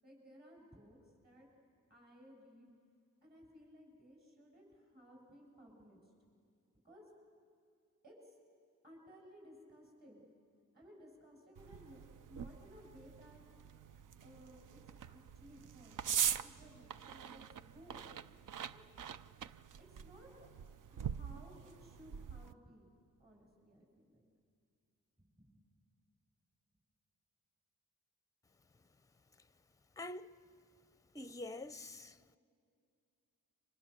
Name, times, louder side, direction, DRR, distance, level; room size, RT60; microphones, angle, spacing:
voice 1, 0.0-1.0 1.2-1.5 1.9-2.7 3.2-6.0 6.8-7.1 8.0-8.4 8.8-10.3 10.7-12.0 12.3-13.4 14.2-18.1 18.7-18.8 19.8-20.5 20.9-22.9 23.2-24.2 25.2-25.6 32.2-32.4, equal, 30° right, 7.5 m, -59 dB
sound 1, 11.6-22.5, right 8 dB, 70° right, 0.6 m, -43 dB
voice 2, 30.0-30.3 31.1-32.2, left 2 dB, 10° left, 0.6 m, -45 dB
30.0 x 25.5 x 6.8 m
wide cardioid pair, 110°, 32 cm